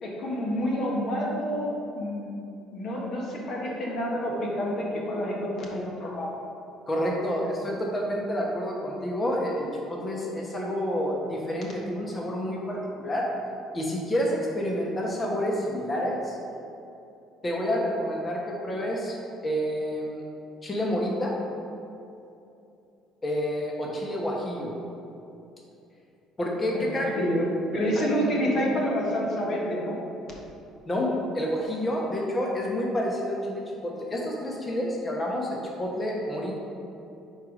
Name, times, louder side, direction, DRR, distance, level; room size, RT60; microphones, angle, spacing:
voice 1, 0.0-2.3 2.7-6.3 26.7-27.4 27.7-30.0, equal, 55° left, -2 dB, 1.4 m, -28 dB
voice 2, 6.9-13.2 13.7-16.4 17.4-20.2 20.6-21.3 23.2-24.7 26.4-27.1 28.0-28.1 30.9-36.6, equal, 30° left, -2 dB, 1.0 m, -29 dB
4.6 x 4.6 x 5.0 m, 2.8 s
supercardioid pair, 70°, 0 cm